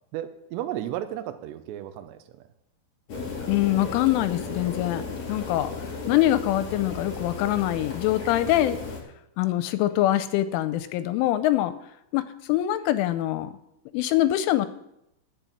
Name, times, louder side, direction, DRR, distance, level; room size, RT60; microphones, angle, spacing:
voice 1, 0.1-2.5, right 12 dB, 85° right, 9 dB, 2.5 m, -34 dB
sound 1, 3.1-9.0, left 4 dB, 40° left, 3.4 m, -35 dB
voice 2, 3.5-8.8 9.4-11.7 12.1-13.5 13.9-14.7, left 14 dB, 85° left, 12 dB, 3.0 m, -24 dB
11.0 x 7.4 x 8.4 m, 0.82 s
omnidirectional pair, 5.7 m